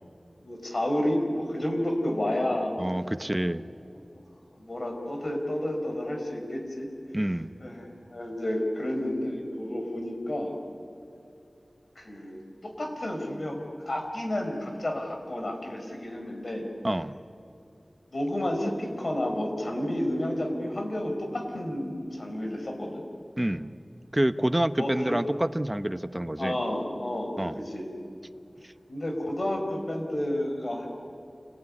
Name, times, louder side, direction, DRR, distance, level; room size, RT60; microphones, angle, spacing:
voice 1, 0.4-2.7 4.5-6.9 7.6-10.6 12.0-16.7 18.1-23.0 24.8-25.2 26.4-27.9 28.9-30.9, left 1 dB, 65° left, 3 dB, 5.2 m, -31 dB
voice 2, 2.8-3.6 7.1-7.5 16.8-17.1 23.4-23.7 24.1-26.6 27.4-27.6, right 1 dB, 20° right, 10 dB, 0.9 m, -27 dB
28.0 x 20.0 x 9.9 m, 2.8 s
wide cardioid pair, 60°, 0 cm